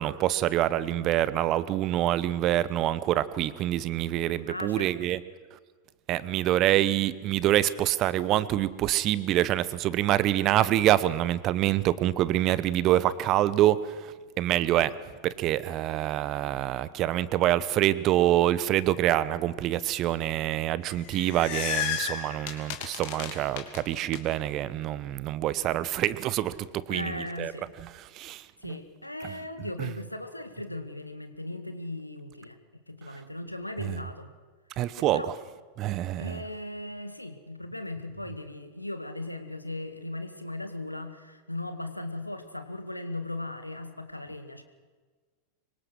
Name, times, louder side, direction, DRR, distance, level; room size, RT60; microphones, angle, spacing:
voice 1, 0.0-5.2 6.1-13.8 14.4-14.9 15.2-27.5 28.2-28.7 29.8-29.9 33.9-34.0 34.8-35.2 35.8-36.4, right 13 dB, 35° right, 17 dB, 1.0 m, -26 dB
voice 2, 4.5-4.9 26.9-27.6 28.6-32.6 32.9-34.3 35.0-35.3 36.2-44.6, left 2 dB, 85° left, 8 dB, 1.9 m, -37 dB
sound 1, 20.9-24.2, left 9 dB, 50° left, 2.8 m, -33 dB
25.5 x 23.5 x 6.3 m, 1.4 s
figure-of-eight pair, 90°, 0 cm